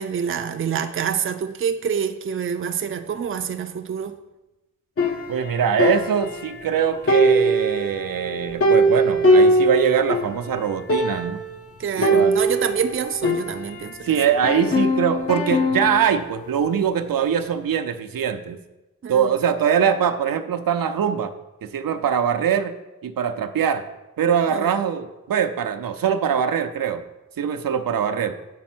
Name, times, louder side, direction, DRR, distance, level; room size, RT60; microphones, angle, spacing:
voice 1, 0.0-4.1 11.8-14.0 19.0-19.3 24.5-24.7, right 7 dB, 40° right, 7 dB, 0.5 m, -26 dB
sound 1, 5.0-6.7 7.1-10.4 10.6-10.7 10.9-11.5 12.0-14.0 14.4-16.1, right 1 dB, 45° left, 0.8 m, -21 dB
voice 2, 5.3-11.4 12.0-12.3 14.0-18.6 19.1-21.3 21.7-22.8 23.0-23.8 24.2-27.0 27.4-28.4, right 8 dB, 80° right, 8 dB, 0.6 m, -22 dB
8.4 x 4.2 x 6.1 m, 1.0 s
wide cardioid pair, 125°, 34 cm